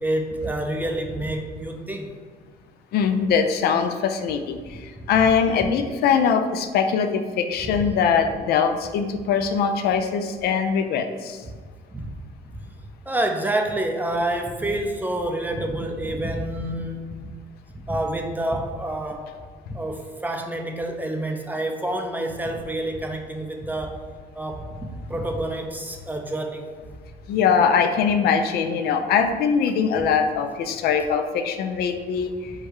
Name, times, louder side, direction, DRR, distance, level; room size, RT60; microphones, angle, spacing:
voice 1, 0.0-2.1 5.2-5.3 7.6-7.9 11.4-11.5 11.9-12.1 12.6-12.7 13.1-17.2 17.9-19.3 19.7-24.0 24.3-26.7, right 1 dB, 10° right, 4 dB, 0.4 m, -28 dB
voice 2, 2.9-11.4 27.3-32.5, left 6 dB, 70° left, 7 dB, 0.4 m, -22 dB
4.6 x 2.2 x 4.7 m, 1.5 s
cardioid pair, 110°, 17 cm